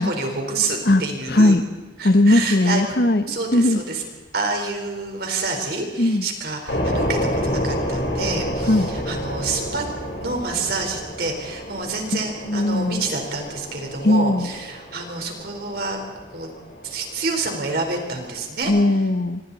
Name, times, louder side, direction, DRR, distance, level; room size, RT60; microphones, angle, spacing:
voice 1, 0.0-1.6 2.0-2.8 3.3-4.0 4.3-9.9 10.2-16.0 16.3-16.5 16.8-18.7, right 3 dB, 60° right, 3 dB, 4.4 m, -28 dB
voice 2, 1.3-1.6 2.0-3.2 3.5-3.8 6.0-6.2 8.7-8.9 12.1-13.0 14.0-14.5 18.7-19.4, left 1 dB, 60° left, 9 dB, 1.2 m, -18 dB
sound 1, 6.7-18.6, equal, 85° left, 4.3 m, -29 dB
26.0 x 25.5 x 4.2 m, 1.4 s
head